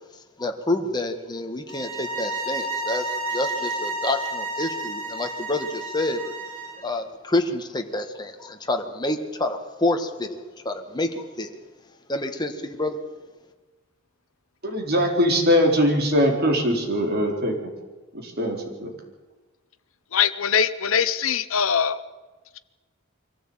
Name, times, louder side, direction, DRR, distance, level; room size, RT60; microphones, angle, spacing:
voice 1, 0.4-6.3 6.8-11.5 12.1-13.0, left 2 dB, 20° left, 4 dB, 1.7 m, -28 dB
sound 1, 1.7-6.8, right 2 dB, 80° right, 3.3 m, -31 dB
voice 2, 14.6-17.6 18.1-18.9, equal, 50° right, 2 dB, 4.2 m, -21 dB
voice 3, 20.1-22.0, left 7 dB, 75° left, 10 dB, 0.9 m, -22 dB
23.5 x 15.0 x 8.9 m, 1.2 s
head